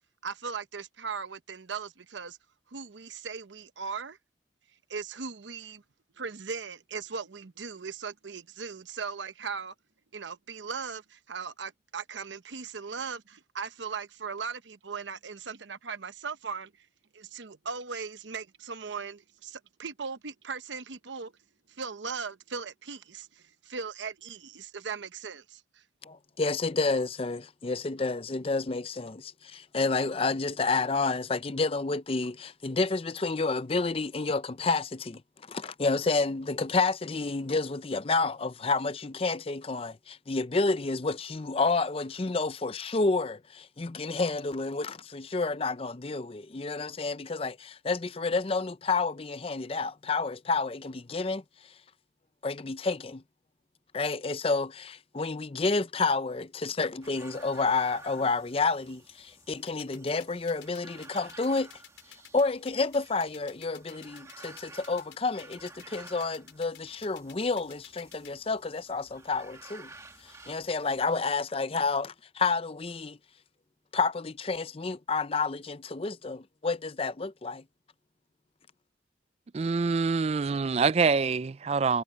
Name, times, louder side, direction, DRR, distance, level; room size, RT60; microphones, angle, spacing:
voice 1, 0.2-2.4 2.7-4.2 4.9-5.8 6.2-9.7 10.1-16.9 17.1-21.3 21.7-25.8, right 5 dB, 80° right, 0.9 m, -38 dB
voice 2, 26.0-35.2 35.5-51.7 52.4-53.2 53.9-61.7 62.3-69.9 70.2-73.2 73.9-77.6, left 3 dB, 30° left, 0.5 m, -30 dB
sound 1, 57.0-71.2, right 3 dB, 15° right, 1.9 m, -52 dB
sound 2, 59.7-68.3, left 11 dB, 85° left, 4.4 m, -50 dB
voice 3, 79.5-82.0, right 4 dB, 35° right, 0.3 m, -25 dB
head